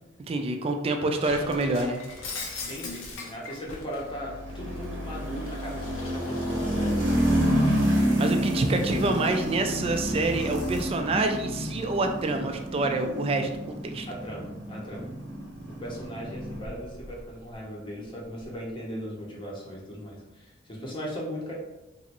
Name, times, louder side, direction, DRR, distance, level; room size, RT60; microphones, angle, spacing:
voice 1, 0.3-2.0 8.2-13.5 13.8-14.1, right 2 dB, 30° right, 5 dB, 0.3 m, -27 dB
Shatter, 1.2-4.1 4.5-7.6, left 3 dB, 85° left, 0.6 m, -41 dB
voice 2, 2.6-8.2 14.1-15.1 15.8-21.5, equal, 25° left, -3 dB, 0.7 m, -38 dB
sound 1, 4.0-17.2, equal, 70° right, 0.8 m, -29 dB
3.0 x 2.5 x 2.9 m, 0.98 s
head